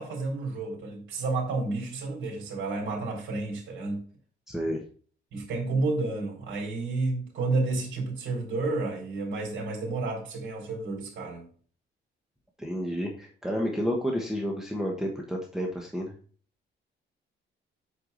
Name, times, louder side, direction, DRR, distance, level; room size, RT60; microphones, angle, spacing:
voice 1, 0.0-4.0 5.3-11.5, right 3 dB, 75° right, 3.6 m, -31 dB
voice 2, 4.5-4.8 12.6-16.1, equal, ahead, 1.2 m, -30 dB
8.3 x 4.8 x 3.9 m
cardioid pair, 150°, 19 cm